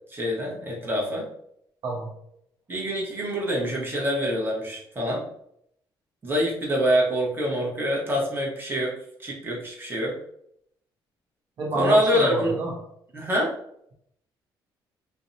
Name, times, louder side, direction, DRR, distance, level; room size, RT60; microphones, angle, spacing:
voice 1, 0.1-1.3 2.7-5.2 6.2-8.9 9.2-10.1 11.7-12.6 13.1-13.5, equal, 25° right, -3 dB, 1.0 m, -25 dB
voice 2, 11.6-12.8, right 2 dB, 50° right, -2 dB, 0.7 m, -28 dB
2.5 x 2.1 x 2.6 m, 0.73 s
cardioid pair, 80°, 9 cm